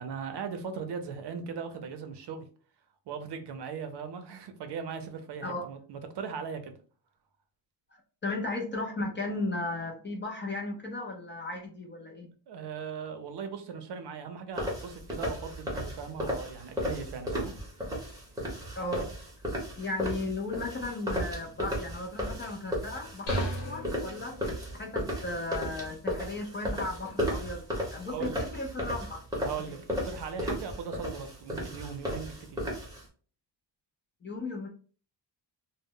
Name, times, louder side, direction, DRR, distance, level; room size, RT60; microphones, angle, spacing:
voice 1, 0.0-2.5 3.1-6.8 12.5-17.5 28.1-28.4 29.4-29.8 30.0-32.8, right 6 dB, 65° right, 7 dB, 0.5 m, -39 dB
voice 2, 7.9-12.3 18.8-24.4 24.8-27.6 27.9-29.2 29.6-29.8 34.2-34.7, left 2 dB, 30° left, 1 dB, 0.3 m, -36 dB
sound 1, 14.6-33.0, equal, 10° right, 0.7 m, -35 dB
sound 2, 23.3-24.9, equal, 65° left, 0.9 m, -36 dB
2.0 x 2.0 x 3.6 m, 0.41 s
wide cardioid pair, 165°, 44 cm